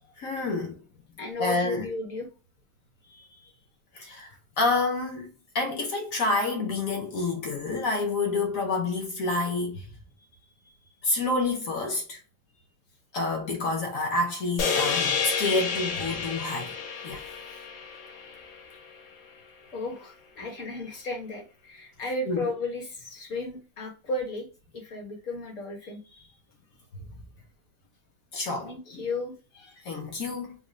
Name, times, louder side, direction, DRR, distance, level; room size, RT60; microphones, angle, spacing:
voice 1, 0.2-0.8 1.4-1.9 3.9-5.3 5.5-9.9 11.0-12.2 13.1-16.8 17.0-17.2 22.3-22.5 28.3-29.1 29.8-30.5, left 3 dB, 65° left, 0.8 m, -28 dB
voice 2, 1.2-2.3 3.0-3.5 10.2-10.3 19.7-24.5 24.7-26.3 28.6-29.8, left 2 dB, 50° left, 1.2 m, -35 dB
sound 1, 14.6-19.0, left 6 dB, 85° left, 1.6 m, -30 dB
3.8 x 2.3 x 3.0 m
omnidirectional pair, 2.1 m